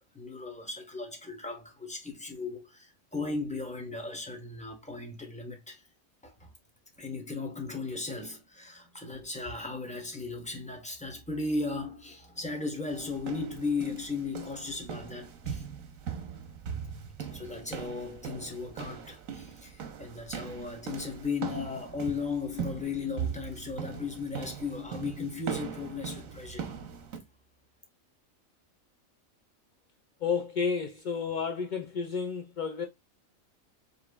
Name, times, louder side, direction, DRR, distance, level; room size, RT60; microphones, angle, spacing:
voice 1, 0.0-5.8 6.2-6.5 7.0-15.6 17.2-26.8, left 4 dB, 5° left, 0.9 m, -36 dB
sound 1, 12.9-27.2, right 7 dB, 90° right, 1.2 m, -40 dB
voice 2, 30.2-32.9, left 5 dB, 70° left, 0.4 m, -31 dB
5.0 x 3.5 x 2.2 m
omnidirectional pair, 1.4 m